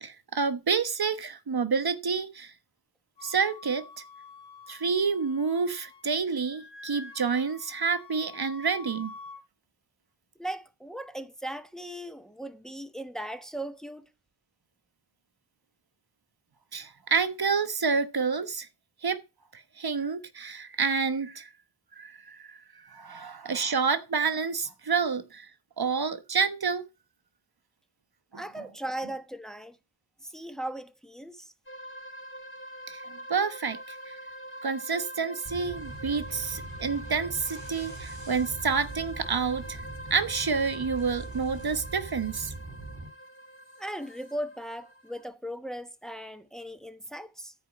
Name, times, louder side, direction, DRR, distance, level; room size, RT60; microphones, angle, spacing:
voice 1, 0.0-2.5 3.2-4.0 4.7-9.1 16.7-18.7 19.0-19.2 19.5-21.5 22.0-25.5 25.8-26.8 28.3-28.4 32.9-34.2 34.6-39.8 40.1-42.5, right 5 dB, 65° right, 1.2 m, -29 dB
Wind instrument woodwind instrument, 3.2-6.1 6.3-9.4, left 4 dB, 85° left, 2.1 m, -48 dB
voice 2, 10.4-14.1 28.4-29.8 30.2-31.5 43.8-47.5, right 1 dB, ahead, 1.1 m, -38 dB
sound 1, 31.7-45.2, equal, 30° left, 3.1 m, -44 dB
sound 2, 35.5-43.1, right 2 dB, 45° right, 3.8 m, -42 dB
13.0 x 5.1 x 8.4 m
wide cardioid pair, 95°, 41 cm